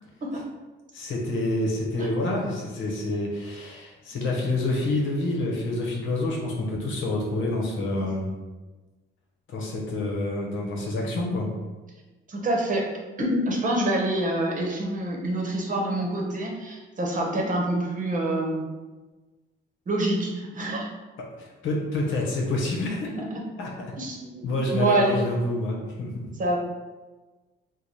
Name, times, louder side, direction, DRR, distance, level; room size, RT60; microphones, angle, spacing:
voice 1, 0.9-8.3 9.5-11.5 21.2-23.2 23.6-24.0 24.4-26.3, left 2 dB, 75° left, -1 dB, 0.9 m, -28 dB
voice 2, 12.3-12.9 13.2-18.7 19.9-20.9 24.0-25.2 26.4-26.6, right 1 dB, 40° right, -1 dB, 0.9 m, -26 dB
3.2 x 2.2 x 4.1 m, 1.2 s
cardioid pair, 90°, 20 cm